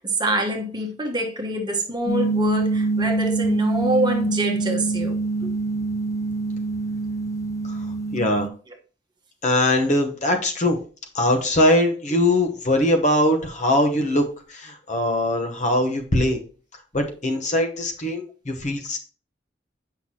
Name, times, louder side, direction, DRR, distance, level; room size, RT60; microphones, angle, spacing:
voice 1, 0.0-5.5, right 1 dB, 25° right, 1.2 m, -26 dB
sound 1, 2.1-8.5, right 3 dB, 20° left, 0.5 m, -25 dB
voice 2, 8.1-8.5 9.4-10.8 11.1-14.2 14.5-16.4 16.9-19.0, left 1 dB, 40° left, 1.0 m, -21 dB
7.9 x 5.8 x 2.9 m
head